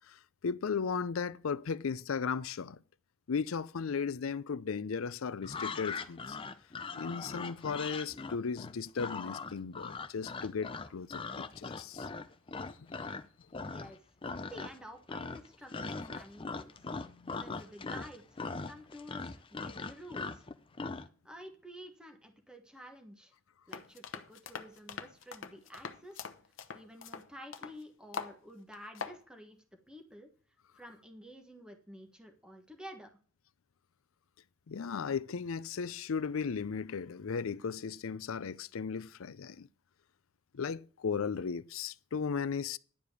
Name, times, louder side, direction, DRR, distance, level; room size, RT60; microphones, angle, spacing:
voice 1, 0.1-2.8 3.3-6.4 6.9-12.1 12.8-12.9 17.0-17.3 34.7-39.7 40.5-42.8, left 5 dB, 80° left, 0.5 m, -36 dB
sound 1, 5.4-13.2 13.5-14.0 14.2-14.8 15.1-21.1, left 4 dB, 25° left, 0.6 m, -40 dB
voice 2, 13.6-14.0 14.5-20.5 21.2-23.3 23.7-26.3 26.7-30.3 30.7-33.1, equal, 5° right, 1.5 m, -51 dB
sound 2, 23.7-27.8 28.1-28.4 28.7-29.2, left 5 dB, 65° left, 0.9 m, -43 dB
11.0 x 5.0 x 8.4 m
head